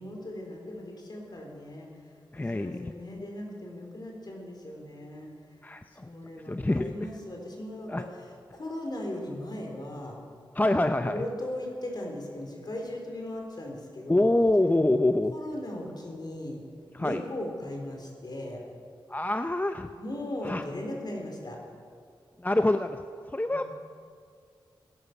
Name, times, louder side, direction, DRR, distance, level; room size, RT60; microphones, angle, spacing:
voice 1, 0.0-1.9 2.3-5.3 5.9-10.2 11.0-14.3 15.3-16.6 17.0-18.6 20.0-21.6 23.5-23.7, left 1 dB, 50° left, 1 dB, 4.2 m, -38 dB
voice 2, 2.3-2.9 5.6-6.1 6.4-7.1 7.9-8.0 10.5-11.2 14.1-15.3 16.9-17.2 19.1-19.9 20.4-20.6 22.4-23.7, left 1 dB, 20° left, 8 dB, 0.6 m, -26 dB
17.0 x 11.0 x 6.8 m, 2.3 s
cardioid pair, 45°, 9 cm